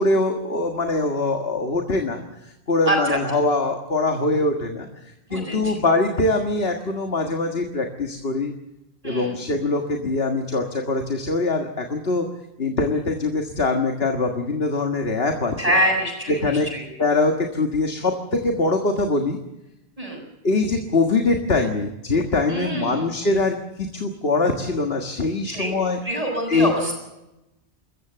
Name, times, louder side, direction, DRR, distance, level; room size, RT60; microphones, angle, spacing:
voice 1, 0.0-4.9 5.3-8.5 9.0-12.3 12.6-15.5 16.4-16.7 17.0-19.4 20.4-26.0 26.5-26.7, left 3 dB, 70° left, 4 dB, 1.9 m, -23 dB
voice 2, 2.9-3.2 5.3-5.7 9.0-9.4 15.6-16.8 20.0-20.2 22.5-23.1 25.5-25.7 26.0-27.0, right 1 dB, 35° right, 2 dB, 7.2 m, -25 dB
26.5 x 14.5 x 8.0 m, 0.93 s
omnidirectional pair, 1.1 m